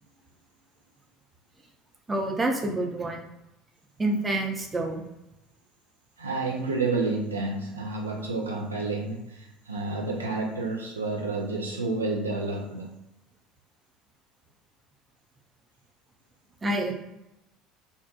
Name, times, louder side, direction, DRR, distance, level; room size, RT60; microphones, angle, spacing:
voice 1, 2.1-3.2 4.0-5.0 16.6-16.9, right 1 dB, 20° right, 1 dB, 0.5 m, -27 dB
voice 2, 6.2-12.9, right 3 dB, 80° right, 0 dB, 0.3 m, -30 dB
2.4 x 2.1 x 2.7 m, 0.87 s
figure-of-eight pair, 65°, 0 cm